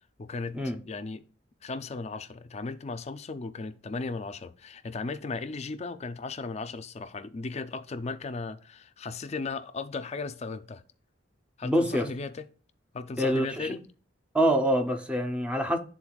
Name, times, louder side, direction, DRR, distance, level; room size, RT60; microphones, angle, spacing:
voice 1, 0.2-1.3 1.6-10.8 11.6-12.5 12.9-13.9, left 4 dB, 35° left, 0.5 m, -36 dB
voice 2, 11.6-12.1 13.2-13.8 14.3-15.8, equal, 5° right, 0.7 m, -25 dB
11.5 x 3.9 x 2.3 m
head